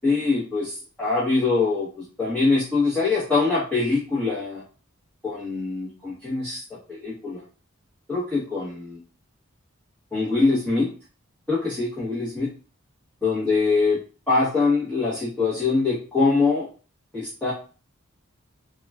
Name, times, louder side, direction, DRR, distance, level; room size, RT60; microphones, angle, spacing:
voice 1, 0.0-4.6 5.2-6.6 6.9-7.4 8.1-9.0 10.1-10.9 11.5-12.5 13.2-14.0 14.3-16.7 17.1-17.5, left 3 dB, 5° left, -11 dB, 0.9 m, -23 dB
3.8 x 2.1 x 2.3 m, 0.37 s
head